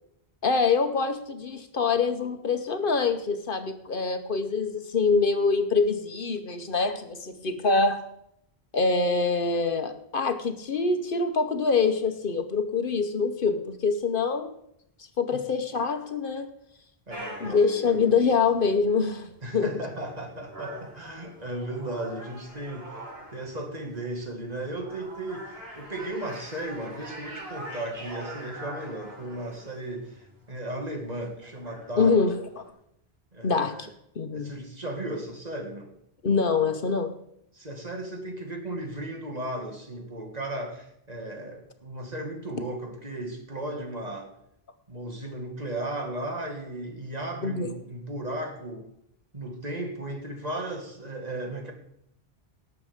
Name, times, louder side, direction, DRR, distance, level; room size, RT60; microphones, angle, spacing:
voice 1, 0.4-8.2 8.7-14.5 15.2-16.5 17.4-19.9 32.0-32.6 33.4-33.9 34.2-34.5 36.2-37.1 47.4-47.7, left 4 dB, 60° left, 1.1 m, -25 dB
voice 2, 17.1-18.2 19.4-23.0 23.3-32.2 33.3-33.9 34.3-35.9 37.5-44.3 44.9-48.9 49.3-51.7, right 1 dB, 40° right, 2.0 m, -35 dB
sound 1, 17.1-32.7, right 1 dB, 75° right, 4.2 m, -44 dB
18.5 x 7.1 x 5.1 m
omnidirectional pair, 1.0 m